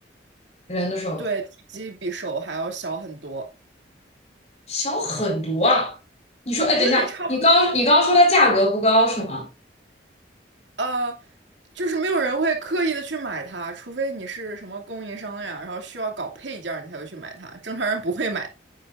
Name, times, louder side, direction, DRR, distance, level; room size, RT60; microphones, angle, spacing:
voice 1, 0.7-1.2 4.7-6.0 6.5-9.5, left 1 dB, 35° left, 4.3 m, -19 dB
voice 2, 1.7-3.5 6.8-7.6 10.8-11.2 11.7-18.5, right 3 dB, 90° right, 2.6 m, -28 dB
10.5 x 8.7 x 2.5 m
head